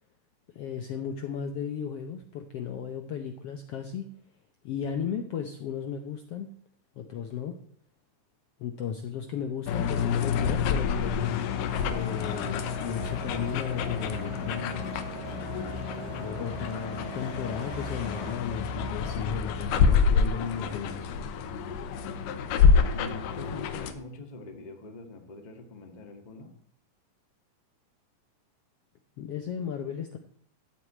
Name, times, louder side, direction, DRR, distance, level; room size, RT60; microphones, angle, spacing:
voice 1, 0.5-4.1 4.6-6.5 6.9-7.5 8.6-11.4 11.9-14.8 16.1-21.1 29.2-30.2, left 7 dB, 70° left, 5 dB, 1.5 m, -35 dB
sound 1, 9.7-23.9, left 6 dB, 90° left, 2.5 m, -28 dB
sound 2, 11.7-18.3, right 11 dB, 65° right, 1.6 m, -43 dB
voice 2, 22.9-26.5, left 2 dB, 25° left, 3 dB, 1.0 m, -44 dB
14.5 x 4.8 x 8.6 m, 0.62 s
omnidirectional pair, 3.7 m